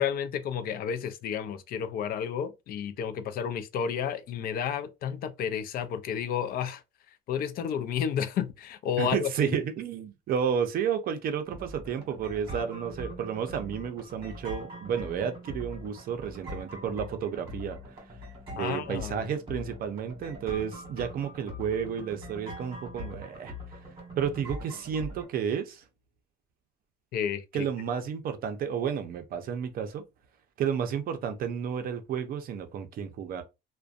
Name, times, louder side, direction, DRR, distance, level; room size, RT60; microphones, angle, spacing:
voice 1, 0.0-6.8 7.3-9.6 18.6-19.3 27.1-27.7, left 8 dB, 50° left, 0.4 m, -31 dB
voice 2, 9.0-18.0 18.5-23.5 24.2-25.8 27.5-30.0 30.6-33.4, right 7 dB, 50° right, 0.5 m, -31 dB
sound 1, 11.4-25.3, left 1 dB, 25° right, 1.3 m, -42 dB
2.5 x 2.1 x 2.4 m
cardioid pair, 135°, 19 cm